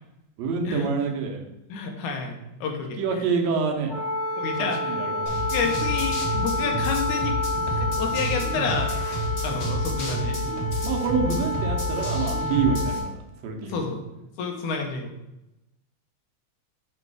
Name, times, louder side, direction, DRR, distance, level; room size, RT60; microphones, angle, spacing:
voice 1, 0.4-1.4 3.0-3.9 4.8-5.3 10.8-13.1 13.4-13.8, right 5 dB, 70° right, 2 dB, 2.0 m, -26 dB
voice 2, 1.7-3.3 4.4-5.0 5.5-7.4 7.7-8.9 9.4-10.4 12.5-12.7 13.7-14.0 14.4-15.1, left 5 dB, 80° left, 3 dB, 2.3 m, -30 dB
Wind instrument woodwind instrument, 3.9-13.1, left 1 dB, 20° left, 1.5 m, -29 dB
sound 1, 5.3-13.0, left 1 dB, 65° left, 0.7 m, -29 dB
6.7 x 3.2 x 4.7 m, 0.90 s
omnidirectional pair, 3.4 m